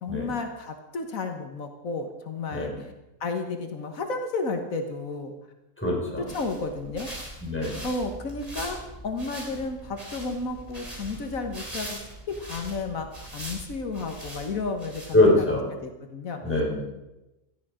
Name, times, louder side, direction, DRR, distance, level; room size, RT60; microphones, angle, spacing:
voice 1, 0.0-2.9 3.2-5.3 6.2-7.1 7.8-12.0 12.3-15.5 15.8-16.4, left 3 dB, 80° left, 5 dB, 1.8 m, -32 dB
voice 2, 5.8-6.2 7.4-7.8 15.1-15.6 16.4-16.8, left 2 dB, 10° left, -3 dB, 5.1 m, -23 dB
sound 1, 6.1-15.5, right 1 dB, 25° right, 3.6 m, -41 dB
18.0 x 13.5 x 5.0 m, 0.98 s
omnidirectional pair, 1.4 m